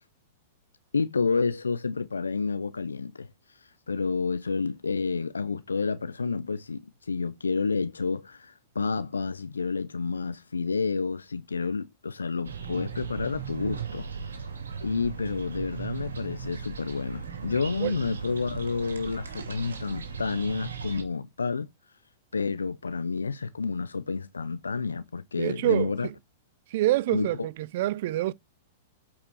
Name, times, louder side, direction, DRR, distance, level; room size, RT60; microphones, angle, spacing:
voice 1, 0.9-3.3 3.6-14.1 14.8-21.7 22.3-26.1 27.1-27.3, left 4 dB, 90° left, 0.5 m, -30 dB
sound 1, 12.4-21.0, right 6 dB, 85° right, 2.1 m, -37 dB
voice 2, 25.4-26.1 26.7-28.3, right 15 dB, 60° right, 0.5 m, -26 dB
8.5 x 5.0 x 4.7 m
hypercardioid pair, 110°, 0 cm